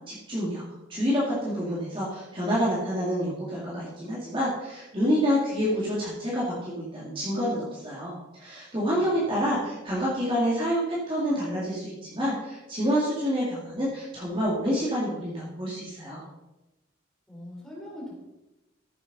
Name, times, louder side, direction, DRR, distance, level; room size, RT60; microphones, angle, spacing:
voice 1, 0.1-0.6 0.9-16.2, equal, 25° right, -6 dB, 2.1 m, -28 dB
voice 2, 8.8-9.7 17.3-18.2, left 1 dB, 5° left, -5 dB, 3.5 m, -43 dB
14.0 x 7.6 x 4.1 m, 1.0 s
head